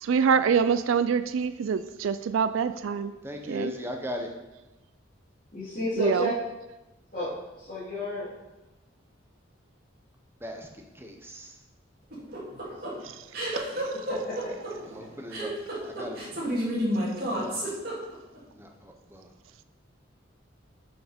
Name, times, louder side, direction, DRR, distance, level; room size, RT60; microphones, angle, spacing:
voice 1, 0.0-3.1 3.5-3.7 6.0-6.3 13.5-13.6, right 6 dB, 90° right, 13 dB, 0.4 m, -25 dB
voice 2, 3.2-4.3 10.4-11.6 14.2-14.3 14.8-16.5 17.4-17.7 18.5-19.3, equal, 10° right, 3 dB, 0.8 m, -39 dB
voice 3, 5.5-6.3 7.1-7.3 7.6-8.3 14.1-14.3, left 1 dB, 45° left, -12 dB, 3.2 m, -31 dB
sound 1, 12.1-18.4, equal, 50° right, 2.4 m, -30 dB
7.0 x 6.1 x 5.2 m, 1.1 s
head